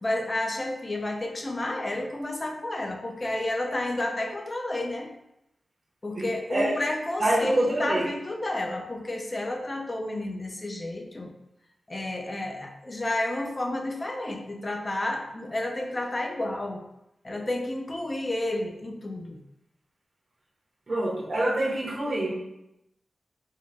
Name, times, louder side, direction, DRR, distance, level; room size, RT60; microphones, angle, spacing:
voice 1, 0.0-5.1 6.0-11.3 11.9-16.8 17.2-19.4, left 1 dB, 35° left, 3 dB, 0.5 m, -31 dB
voice 2, 6.1-6.7 7.2-8.1 20.9-22.3, right 1 dB, 60° right, -5 dB, 0.7 m, -26 dB
3.7 x 2.0 x 3.4 m, 0.85 s
cardioid pair, 65°, 0 cm